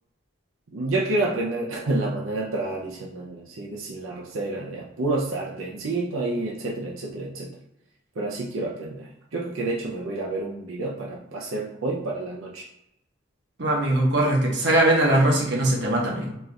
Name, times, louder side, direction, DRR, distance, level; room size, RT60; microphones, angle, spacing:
voice 1, 0.7-7.5 8.2-12.6, right 2 dB, 85° right, -2 dB, 0.6 m, -29 dB
voice 2, 13.6-16.3, right 1 dB, 60° right, -2 dB, 1.0 m, -21 dB
4.4 x 2.4 x 3.3 m, 0.81 s
head